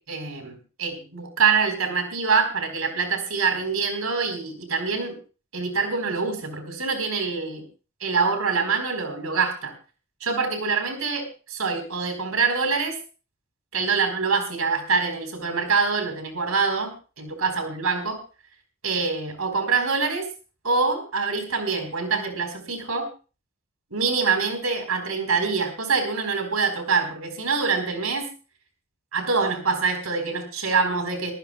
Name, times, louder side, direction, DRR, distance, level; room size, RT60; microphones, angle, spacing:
voice 1, 0.1-5.2 5.5-7.7 8.0-9.7 10.2-13.0 13.7-18.2 18.8-20.3 20.6-23.1 23.9-28.3 29.1-31.3, right 5 dB, 85° right, 6 dB, 4.3 m, -25 dB
23.5 x 14.5 x 2.4 m, 0.34 s
head